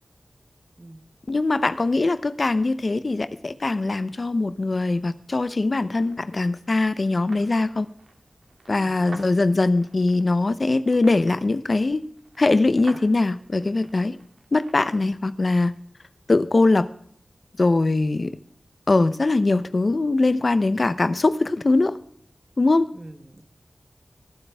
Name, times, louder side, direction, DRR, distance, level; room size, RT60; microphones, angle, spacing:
voice 1, 1.3-7.9 8.7-12.0 12.4-14.2 14.5-15.7 16.3-16.9 17.6-18.4 18.9-22.0 22.6-22.9, left 2 dB, 50° left, 14 dB, 0.6 m, -21 dB
sound 1, 6.0-15.0, right 3 dB, 75° right, 2.4 m, -49 dB
voice 2, 22.9-23.4, right 1 dB, 35° right, 9 dB, 1.4 m, -45 dB
21.0 x 8.6 x 3.4 m, 0.64 s
wide cardioid pair, 65°, 0 cm